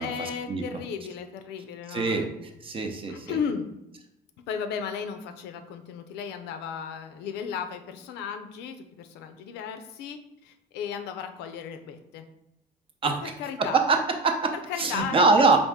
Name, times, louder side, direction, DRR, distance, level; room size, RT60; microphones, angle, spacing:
voice 1, 0.0-2.3 3.1-3.7 4.5-12.3 13.2-13.8 14.5-15.6, left 7 dB, 90° left, 7 dB, 0.5 m, -35 dB
voice 2, 1.9-2.3 2.6-3.4 13.0-13.2 13.6-14.5 14.8-15.6, right 3 dB, 35° right, 4 dB, 0.6 m, -23 dB
4.2 x 2.5 x 3.5 m, 0.87 s
cardioid pair, 110°, 17 cm